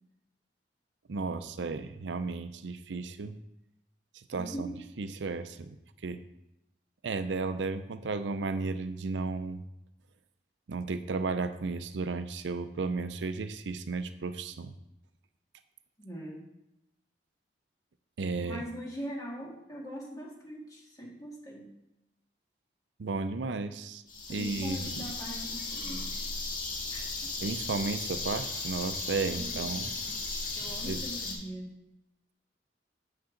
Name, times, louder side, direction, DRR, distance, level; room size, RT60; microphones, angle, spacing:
voice 1, 1.1-3.4 4.1-5.8 6.0-6.2 7.0-9.6 10.7-14.7 18.2-18.6 23.0-24.0 24.3-25.1 27.4-29.9 30.9-31.0, right 4 dB, 85° right, 11 dB, 0.5 m, -34 dB
voice 2, 4.3-4.8 16.0-16.5 18.4-21.7 24.3-26.2 26.9-27.3 29.2-29.9 30.6-31.7, equal, 20° left, -2 dB, 1.8 m, -41 dB
sound 1, 24.1-31.3, left 3 dB, 50° left, 1.6 m, -36 dB
8.6 x 6.8 x 3.8 m, 0.88 s
head